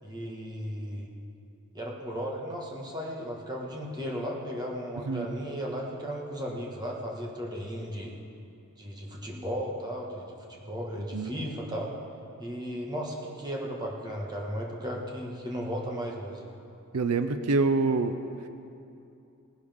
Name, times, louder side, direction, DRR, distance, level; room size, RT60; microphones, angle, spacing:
voice 1, 0.0-1.1 1.7-8.1 8.8-11.9 12.4-16.4, equal, 20° right, -2 dB, 1.6 m, -35 dB
voice 2, 16.9-18.2, right 3 dB, 90° right, 9 dB, 0.6 m, -26 dB
18.5 x 11.5 x 3.6 m, 2.7 s
head